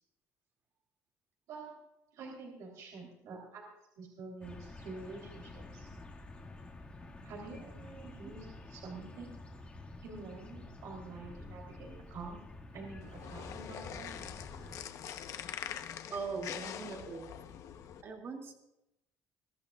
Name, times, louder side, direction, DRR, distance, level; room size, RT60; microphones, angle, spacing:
voice 1, 2.1-3.6 4.0-5.9 7.2-9.4 10.0-12.4 12.7-14.1 15.1-15.2, right 3 dB, 65° right, -1 dB, 3.7 m, -47 dB
sound 1, 4.4-14.8, left 2 dB, 20° left, 2.1 m, -49 dB
sound 2, 13.0-18.0, left 9 dB, 60° left, 1.0 m, -44 dB
voice 2, 16.1-17.4 18.0-18.5, right 4 dB, 45° right, 1 dB, 2.6 m, -40 dB
23.0 x 14.5 x 2.5 m, 0.87 s
cardioid pair, 135°, 6 cm